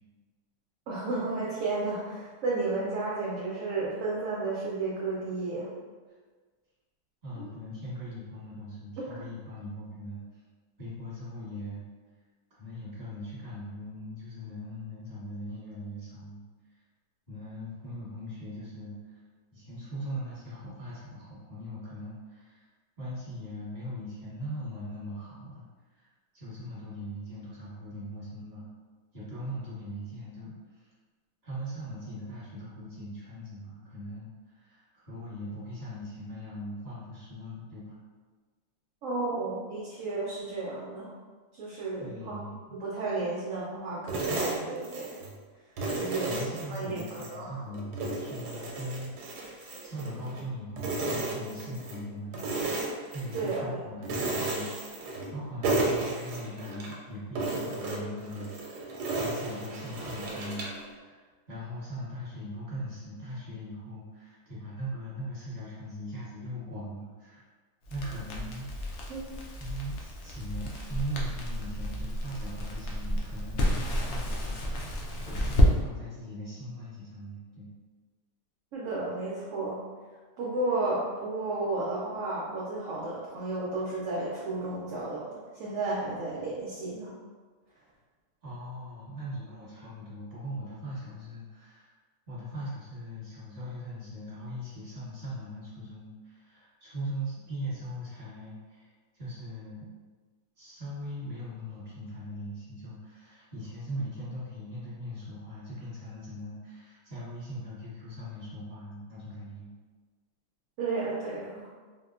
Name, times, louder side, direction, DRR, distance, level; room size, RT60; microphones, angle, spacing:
voice 1, 0.9-5.7 7.4-7.5 9.0-9.2 39.0-41.1 41.5-42.4 42.7-45.1 45.9-46.3 46.7-47.6 53.3-53.8 69.1-69.2 78.7-79.8 80.4-87.1 110.8-111.7, right 3 dB, 70° right, -6 dB, 0.8 m, -33 dB
voice 2, 7.2-10.4 10.8-11.8 12.6-16.4 17.3-19.2 19.5-22.7 23.0-25.6 25.9-26.1 26.3-28.6 29.1-30.9 31.4-38.0 42.0-42.5 45.9-52.6 53.1-67.5 67.9-68.9 69.6-77.7 88.4-91.9 92.3-99.9 100.6-109.7, equal, 25° right, -9 dB, 1.2 m, -40 dB
sound 1, 44.1-45.4 45.8-47.3 47.7-50.4 50.8-52.0 52.3-53.6 54.0-55.4 55.6-56.9 57.3-60.8, right 2 dB, 90° right, 1.2 m, -33 dB
Crackle, 67.8-75.7, equal, 80° left, 0.6 m, -30 dB
3.5 x 2.2 x 2.4 m, 1.4 s
omnidirectional pair, 1.7 m